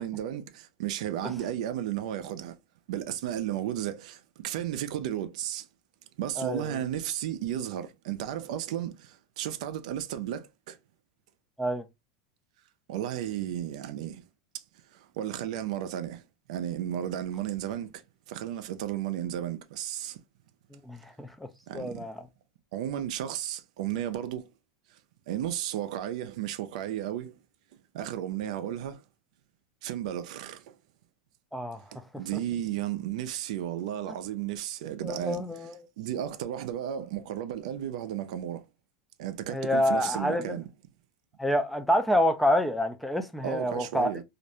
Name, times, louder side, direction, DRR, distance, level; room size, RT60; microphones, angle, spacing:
voice 1, 0.0-2.6 2.9-5.7 6.2-10.8 12.9-14.2 14.5-14.6 14.9-18.0 18.3-20.2 21.7-22.1 22.7-24.5 25.3-27.4 27.9-29.0 29.8-30.7 31.9-35.7 36.0-38.6 39.2-40.7 43.4-44.2, right 11 dB, 75° right, 0.4 m, -34 dB
voice 2, 6.4-6.8 11.6-11.8 20.7-21.5 21.7-22.2 31.5-31.8 35.0-35.8 39.5-40.5 41.4-44.1, left 1 dB, ahead, 0.3 m, -27 dB
2.4 x 2.1 x 2.7 m
supercardioid pair, 120°, 4 cm